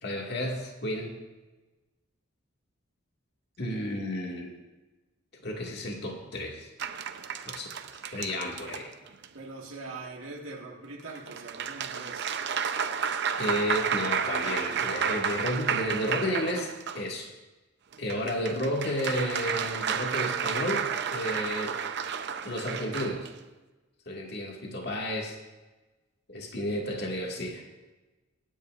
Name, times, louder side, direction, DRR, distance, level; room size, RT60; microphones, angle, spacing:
voice 1, 0.0-1.1 3.6-4.6 5.4-6.7 7.5-7.7 8.1-8.9 13.4-17.3 18.0-21.7 22.4-23.3 24.1-25.4 26.3-27.6, equal, 55° left, -1 dB, 2.1 m, -32 dB
sound 1, 6.8-9.3 11.1-17.1 17.9-23.3, right 7 dB, 55° right, 0.7 m, -32 dB
voice 2, 9.3-12.4, right 3 dB, 90° right, -2 dB, 1.8 m, -42 dB
25.0 x 9.8 x 2.5 m, 1.2 s
head